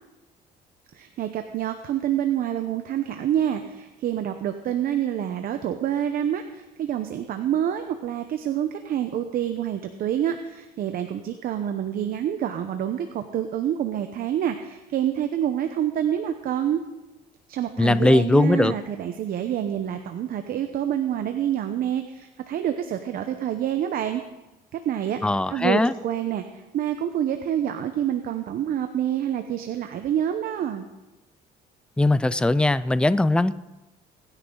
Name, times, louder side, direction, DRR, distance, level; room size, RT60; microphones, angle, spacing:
voice 1, 0.9-16.8 17.5-24.2 24.7-25.2 25.5-30.9, right 10 dB, 60° right, 7 dB, 0.9 m, -27 dB
voice 2, 17.8-18.7 25.2-25.9 32.0-33.5, left 2 dB, 5° left, 16 dB, 0.4 m, -20 dB
22.0 x 10.0 x 3.9 m, 1.0 s
cardioid pair, 110°, 17 cm